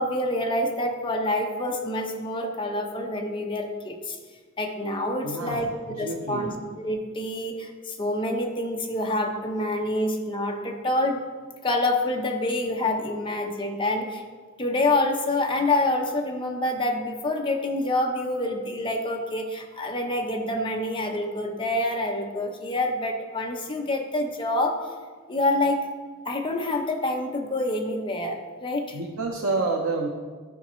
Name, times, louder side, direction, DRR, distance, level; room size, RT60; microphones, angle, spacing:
voice 1, 0.0-4.2 4.6-5.7 6.0-11.2 11.6-14.2 14.6-24.8 25.3-25.9 26.2-29.0, left 1 dB, 25° left, 2 dB, 0.9 m, -27 dB
voice 2, 5.2-5.7 6.0-6.5 28.9-30.1, right 3 dB, 80° right, 0 dB, 0.8 m, -28 dB
12.5 x 5.1 x 3.1 m, 1.5 s
head